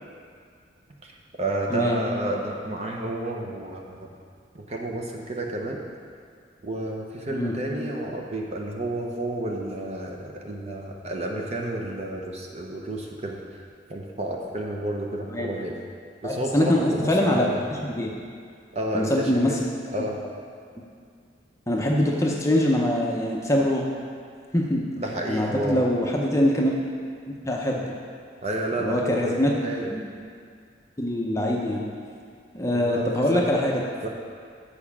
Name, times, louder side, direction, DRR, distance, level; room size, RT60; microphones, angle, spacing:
voice 1, 1.4-4.1 4.5-5.8 6.6-13.6 13.9-15.8 16.2-17.6 18.7-19.6 19.9-20.2 25.0-25.8 28.4-29.3 29.6-29.9 32.7-33.0 33.3-33.4 34.0-34.1, right 1 dB, 35° right, 0 dB, 0.8 m, -30 dB
voice 2, 16.2-17.5 17.8-18.1 18.9-19.6 20.0-20.1 21.7-23.8 24.5-24.8 25.3-26.8 27.3-27.9 28.8-29.5 29.9-30.1 31.0-31.9 32.5-33.8, left 1 dB, 15° left, -2 dB, 0.6 m, -23 dB
7.0 x 4.9 x 7.1 m, 2.2 s
head